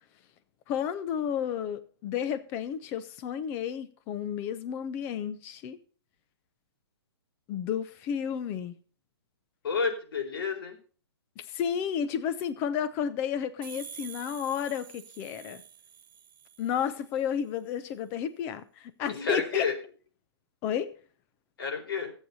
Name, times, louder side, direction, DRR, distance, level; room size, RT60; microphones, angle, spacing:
voice 1, 0.7-5.8 7.5-8.7 11.5-15.6 16.6-19.6 20.6-20.9, left 8 dB, 15° left, 0.6 m, -32 dB
voice 2, 9.6-10.8 19.1-19.8 21.6-22.1, left 5 dB, 60° left, 4.2 m, -30 dB
sound 1, 13.6-17.2, right 8 dB, 55° right, 0.9 m, -48 dB
15.0 x 8.2 x 5.4 m
hypercardioid pair, 175°, 14 cm